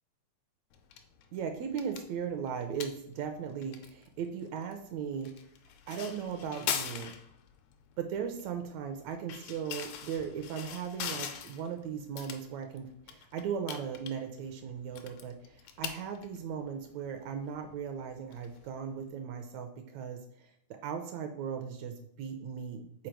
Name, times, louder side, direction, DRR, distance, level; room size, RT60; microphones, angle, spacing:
sound 1, 0.7-19.1, left 8 dB, 80° left, 1.7 m, -43 dB
voice 1, 1.3-5.3 5.9-7.1 8.0-20.2 20.8-23.1, right 7 dB, 80° right, 5 dB, 1.7 m, -37 dB
5.1 x 4.1 x 4.5 m, 0.72 s
omnidirectional pair, 3.4 m